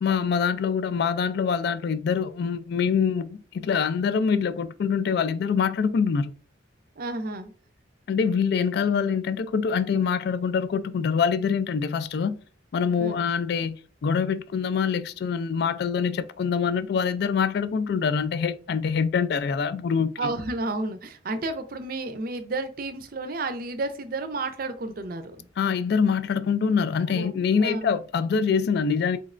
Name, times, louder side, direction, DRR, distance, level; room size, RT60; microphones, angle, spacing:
voice 1, 0.0-6.3 8.1-12.4 12.7-13.8 14.0-20.3 25.6-29.2, left 6 dB, 55° left, 0.3 m, -25 dB
voice 2, 7.0-7.5 13.0-13.2 20.2-25.5 27.2-27.3 27.6-27.9, right 2 dB, 50° right, 0.5 m, -31 dB
3.9 x 3.2 x 2.5 m
head